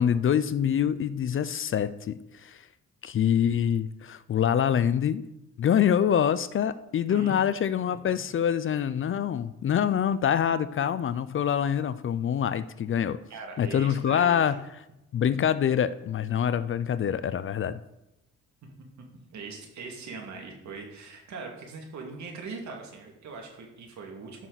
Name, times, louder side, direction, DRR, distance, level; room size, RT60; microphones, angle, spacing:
voice 1, 0.0-2.6 3.0-5.2 5.6-13.2 13.6-14.6 15.1-17.8, left 9 dB, 45° left, 14 dB, 0.5 m, -25 dB
voice 2, 7.1-7.4 7.8-8.0 13.3-14.4 18.6-18.7 19.3-24.5, right 4 dB, 70° right, 2 dB, 2.3 m, -41 dB
13.5 x 6.0 x 4.0 m, 0.90 s
cardioid pair, 90°, 30 cm